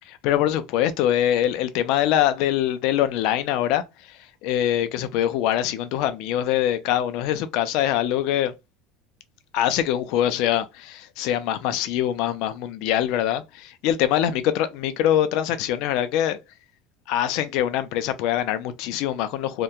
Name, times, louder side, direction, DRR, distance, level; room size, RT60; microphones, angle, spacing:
voice 1, 0.1-8.5 9.5-16.4 17.1-19.6, left 11 dB, 55° left, 0.3 m, -23 dB
2.7 x 2.1 x 2.2 m
cardioid pair, 175°, 0 cm